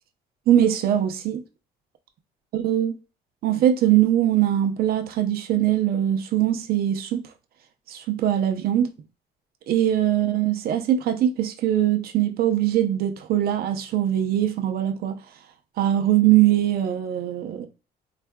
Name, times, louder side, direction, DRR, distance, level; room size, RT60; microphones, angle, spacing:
voice 1, 0.5-1.4 2.5-3.0 3.4-7.3 7.9-8.9 9.7-15.2 15.8-17.7, right 11 dB, 65° right, 0.6 m, -21 dB
4.4 x 2.5 x 2.2 m
cardioid pair, 110°, 17 cm